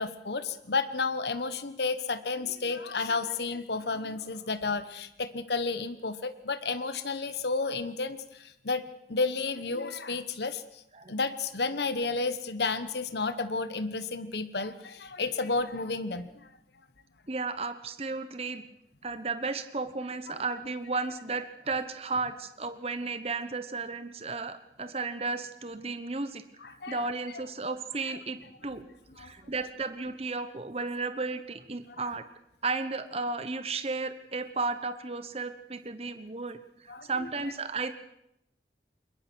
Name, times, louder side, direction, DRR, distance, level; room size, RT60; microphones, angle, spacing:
voice 1, 0.0-8.8 9.1-10.8 11.1-16.5 26.6-27.0 29.2-29.3 36.9-37.1, left 4 dB, 70° left, 11 dB, 1.2 m, -32 dB
voice 2, 17.3-18.6 19.0-28.9 29.1-32.2 32.6-37.9, right 3 dB, 35° right, 11 dB, 1.0 m, -34 dB
22.0 x 21.0 x 6.3 m, 0.81 s
head